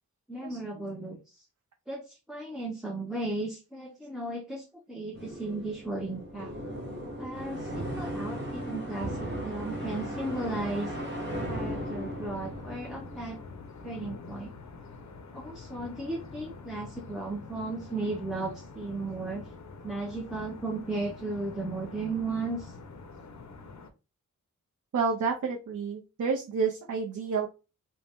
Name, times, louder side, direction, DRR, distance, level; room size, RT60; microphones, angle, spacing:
voice 1, 0.3-1.4 1.9-6.5 7.2-10.9 11.5-13.4 13.8-14.5 15.3-19.4 19.8-22.7, right 2 dB, ahead, 0 dB, 0.4 m, -35 dB
sound 1, 5.1-14.0, equal, 35° right, 1.0 m, -37 dB
sound 2, 9.8-23.9, left 4 dB, 55° left, 0.5 m, -46 dB
voice 2, 24.9-27.5, right 5 dB, 65° right, 0 dB, 0.5 m, -29 dB
2.6 x 2.1 x 3.4 m, 0.30 s
wide cardioid pair, 85°, 33 cm